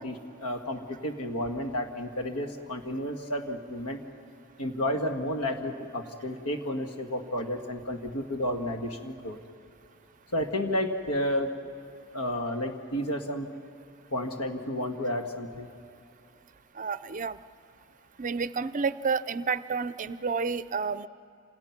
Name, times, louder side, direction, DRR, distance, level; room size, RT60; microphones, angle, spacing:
voice 1, 0.0-4.0 4.6-9.4 10.3-11.5 12.1-13.5 14.1-15.7, left 1 dB, 85° left, 4 dB, 1.9 m, -31 dB
voice 2, 16.8-17.4 18.2-21.1, right 5 dB, 35° right, 15 dB, 0.5 m, -30 dB
28.0 x 27.5 x 6.0 m, 2.5 s
head